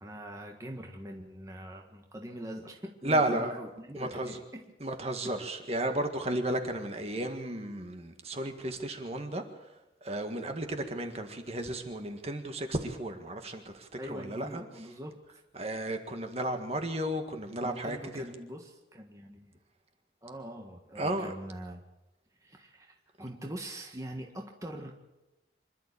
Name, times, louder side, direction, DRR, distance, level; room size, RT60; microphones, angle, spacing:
voice 1, 0.0-4.6 14.0-15.2 17.6-19.5 20.2-21.8 22.4-24.9, right 1 dB, 20° right, 2 dB, 1.7 m, -43 dB
voice 2, 3.0-3.5 4.0-4.4 4.8-9.4 10.0-14.6 15.6-18.2 21.0-21.3, right 1 dB, 35° right, 6 dB, 1.8 m, -33 dB
26.0 x 12.0 x 8.5 m, 0.99 s
head